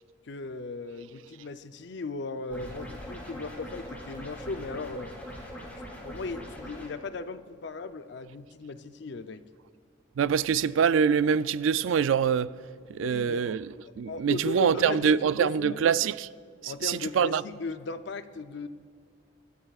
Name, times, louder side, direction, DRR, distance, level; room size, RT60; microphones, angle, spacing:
voice 1, 0.2-5.1 5.7-9.4 13.0-13.6 14.1-15.1 15.4-15.8 16.6-18.7, left 3 dB, 65° left, 0.5 m, -37 dB
sound 1, 2.5-6.9, equal, 10° left, 3.0 m, -41 dB
voice 2, 10.2-12.5 12.9-13.7 14.0-16.3 16.6-17.4, right 7 dB, 90° right, 0.4 m, -25 dB
25.0 x 12.5 x 2.4 m
head